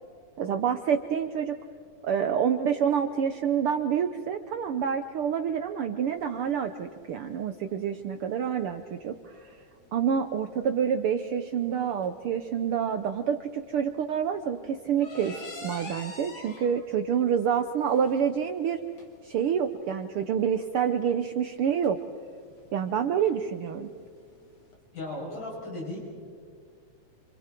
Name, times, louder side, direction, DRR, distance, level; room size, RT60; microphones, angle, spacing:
voice 1, 0.4-1.5 2.0-9.6 9.9-18.8 19.2-22.0 22.7-23.9, right 8 dB, 85° right, 7 dB, 1.2 m, -27 dB
sound 1, 6.1-24.7, left 3 dB, 55° left, 4.1 m, -49 dB
voice 2, 24.9-26.0, left 1 dB, 80° left, -4 dB, 9.6 m, -36 dB
27.5 x 27.0 x 4.5 m, 2.2 s
omnidirectional pair, 3.6 m